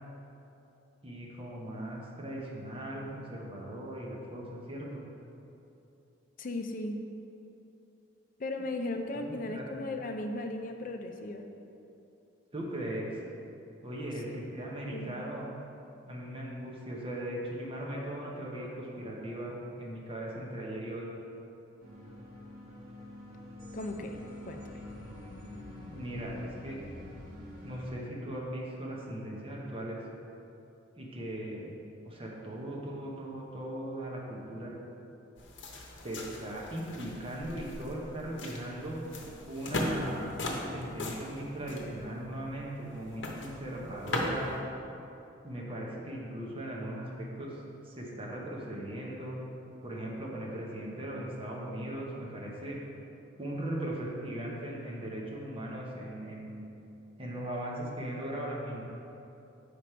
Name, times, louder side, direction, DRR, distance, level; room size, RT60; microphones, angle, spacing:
voice 1, 1.0-5.1 9.4-9.9 12.5-13.2 13.8-15.4 16.1-21.1 25.8-26.8 27.6-30.0 31.0-31.7 32.0-34.7 36.0-39.0 39.4-44.5 45.4-47.5 47.8-49.4 49.8-52.8 53.4-56.6 57.2-58.8, right 1 dB, 30° right, -3 dB, 1.0 m, -38 dB
voice 2, 6.4-7.0 8.4-11.4 14.9-15.2 23.7-24.2 24.5-24.7, left 2 dB, 45° left, 4 dB, 0.5 m, -36 dB
sound 1, 21.8-27.9, left 1 dB, 50° right, 1.4 m, -46 dB
sound 2, 35.4-44.6, left 1 dB, 70° left, 0.9 m, -38 dB
6.5 x 5.1 x 4.4 m, 2.8 s
head